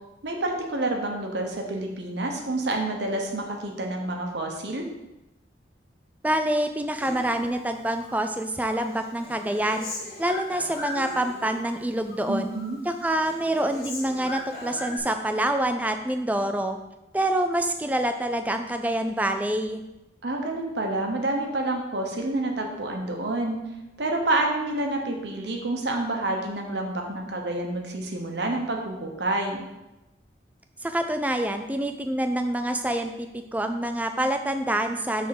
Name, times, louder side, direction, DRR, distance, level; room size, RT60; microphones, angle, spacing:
voice 1, 0.2-4.8 12.3-12.8 20.2-23.6 24.0-29.6, right 2 dB, 70° right, 2 dB, 1.1 m, -28 dB
voice 2, 6.2-9.9 10.2-12.5 12.9-16.8 17.1-19.8 30.8-35.3, right 1 dB, 10° right, 6 dB, 0.4 m, -26 dB
Human voice, 7.0-8.2 8.5-11.7 12.0-12.7 13.0-15.0, left 1 dB, 50° left, 2.0 m, -39 dB
6.1 x 3.6 x 5.9 m, 0.97 s
head